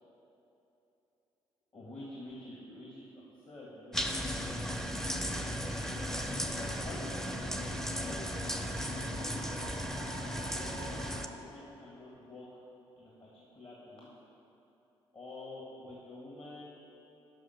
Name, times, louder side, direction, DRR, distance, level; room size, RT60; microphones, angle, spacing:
voice 1, 1.7-5.4 6.6-7.2 8.0-12.6 12.9-14.1 15.1-16.8, left 1 dB, 40° left, -5 dB, 1.7 m, -49 dB
sound 1, 3.9-11.3, equal, 5° left, 0.6 m, -36 dB
sound 2, 4.8-11.3, right 4 dB, 80° right, 0.4 m, -50 dB
6.2 x 5.6 x 6.6 m, 2.9 s
hypercardioid pair, 45°, 14 cm